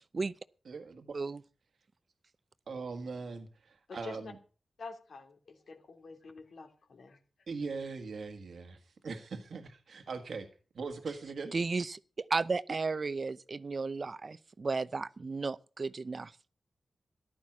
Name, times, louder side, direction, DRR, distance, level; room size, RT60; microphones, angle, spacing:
voice 1, 0.7-1.2 2.7-4.4 7.5-10.5 10.8-11.5, right 4 dB, 75° right, 1.6 m, -41 dB
voice 2, 3.9-4.3 4.8-7.2, left 4 dB, 75° left, 2.8 m, -47 dB
voice 3, 11.5-16.5, right 4 dB, 50° right, 0.7 m, -34 dB
14.0 x 11.5 x 6.1 m
cardioid pair, 75°, 0 cm